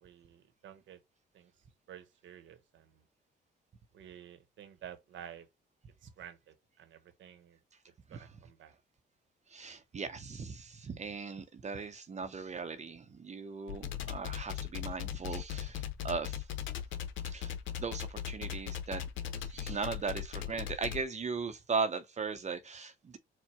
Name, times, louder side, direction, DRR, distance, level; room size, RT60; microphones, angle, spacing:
voice 1, 0.0-1.0 1.3-1.5 1.9-3.0 3.9-5.5 6.0-7.6 8.1-8.7, right 9 dB, 70° right, 0.9 m, -51 dB
voice 2, 9.5-16.5 17.3-17.5 17.8-19.0 19.3-23.2, right 5 dB, 35° right, 0.6 m, -38 dB
sound 1, 13.7-21.0, left 10 dB, 75° left, 0.7 m, -38 dB
4.5 x 2.1 x 4.3 m
cardioid pair, 90°, 20 cm